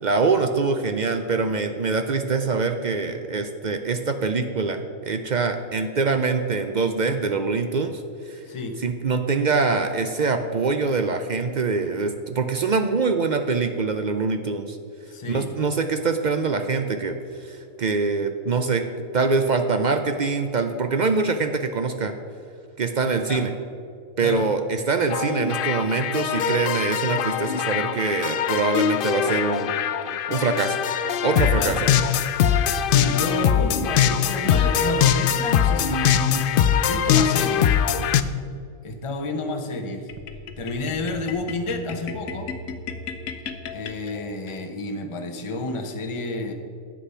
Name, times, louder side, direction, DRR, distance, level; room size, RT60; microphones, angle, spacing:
voice 1, 0.0-8.4 8.8-14.8 15.3-17.2 17.4-18.8 19.1-22.1 22.8-23.5 24.2-29.7 30.3-30.8 31.2-31.9, right 4 dB, 60° right, 7 dB, 0.5 m, -24 dB
voice 2, 15.1-15.5 23.3-23.5 24.2-24.5 31.6-31.8 32.9-37.8 38.8-40.1 40.6-42.5 43.7-46.5, left 2 dB, 25° left, 4 dB, 0.8 m, -30 dB
sound 1, 25.1-38.2, left 8 dB, 70° left, 0.5 m, -22 dB
sound 2, 40.1-44.6, left 5 dB, 85° left, 1.2 m, -36 dB
10.0 x 7.7 x 5.6 m, 2.4 s
omnidirectional pair, 1.4 m